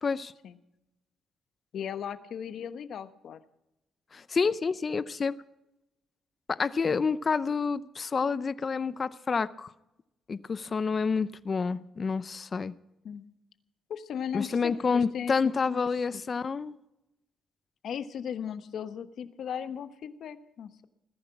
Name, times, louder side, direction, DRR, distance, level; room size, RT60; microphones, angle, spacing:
voice 1, 0.0-0.3 4.1-5.4 6.5-9.7 10.3-12.7 14.3-16.8, left 5 dB, 40° left, 0.6 m, -28 dB
voice 2, 1.7-3.4 13.0-13.2 13.9-15.3 15.7-15.8 17.8-20.8, left 8 dB, 65° left, 1.1 m, -37 dB
20.5 x 10.5 x 5.9 m
cardioid pair, 90°, 0 cm